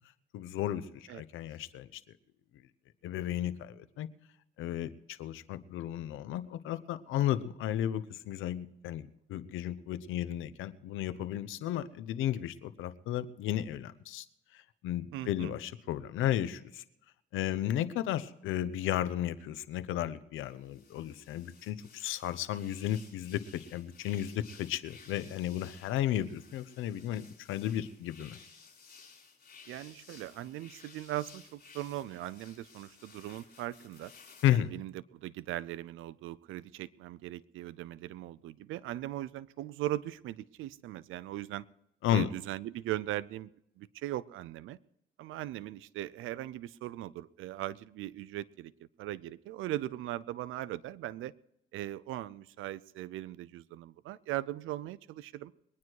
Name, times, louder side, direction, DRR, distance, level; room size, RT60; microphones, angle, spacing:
voice 1, 0.3-2.0 3.0-4.1 4.6-14.2 14.5-16.8 17.3-28.4 34.4-34.7 42.0-42.3, left 12 dB, 90° left, 14 dB, 0.9 m, -34 dB
voice 2, 15.1-15.6 29.7-34.1 34.5-41.7 42.1-43.5 43.8-44.8 45.2-48.7 49.0-51.3 51.7-55.5, right 14 dB, 85° right, 17 dB, 0.6 m, -39 dB
sound 1, 20.4-34.6, left 5 dB, 50° left, 5.3 m, -56 dB
22.0 x 9.7 x 4.6 m, 0.79 s
cardioid pair, 90°, 20 cm